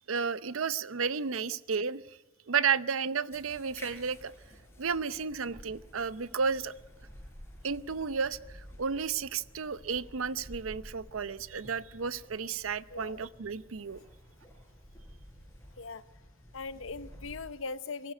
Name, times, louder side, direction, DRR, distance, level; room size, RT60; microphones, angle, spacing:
voice 1, 0.1-2.0 2.5-4.3 4.8-6.7 7.6-14.0, right 6 dB, 80° right, 16 dB, 0.7 m, -32 dB
sound 1, 3.3-17.5, equal, 10° left, 5.6 m, -52 dB
voice 2, 12.9-13.2 15.8-16.0 16.5-18.1, left 4 dB, 70° left, 14 dB, 0.9 m, -40 dB
23.5 x 14.0 x 9.1 m, 1.1 s
head